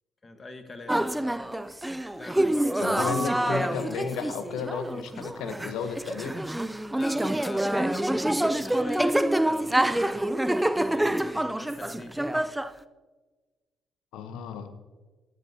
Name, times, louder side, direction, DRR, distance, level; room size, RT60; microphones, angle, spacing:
voice 1, 0.2-1.1 2.2-2.8 3.5-3.6 7.0-10.3 10.8-12.3, left 2 dB, 30° left, 7 dB, 1.2 m, -43 dB
sound 1, 0.9-12.7, right 1 dB, 10° right, 0.4 m, -27 dB
voice 2, 2.8-6.4 14.1-14.7, left 6 dB, 80° left, 9 dB, 0.8 m, -33 dB
12.5 x 10.0 x 2.7 m, 1.3 s
supercardioid pair, 60°, 0 cm